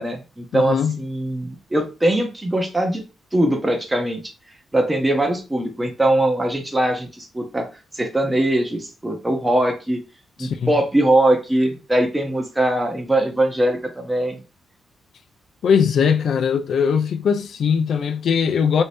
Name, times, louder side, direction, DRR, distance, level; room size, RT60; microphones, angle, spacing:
voice 1, 0.0-3.0 3.3-4.2 4.7-7.7 7.9-10.0 10.4-14.4, right 1 dB, 10° right, 0.6 m, -21 dB
voice 2, 0.5-1.0 10.4-10.7 15.6-18.8, left 7 dB, 60° left, 0.4 m, -20 dB
3.2 x 2.6 x 3.3 m
wide cardioid pair, 150°, 0 cm